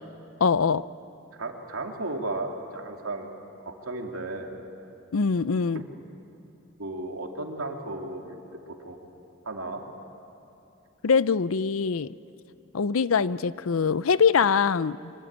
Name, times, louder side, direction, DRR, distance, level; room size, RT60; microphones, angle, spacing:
voice 1, 0.4-0.8 5.1-5.8 11.0-12.1 12.7-15.1, left 5 dB, 80° left, 17 dB, 0.6 m, -23 dB
voice 2, 1.4-3.3 3.6-4.5 5.7-5.8 6.8-9.0 9.4-9.8, right 2 dB, 85° right, 2 dB, 2.8 m, -34 dB
24.5 x 24.5 x 8.9 m, 2.8 s
head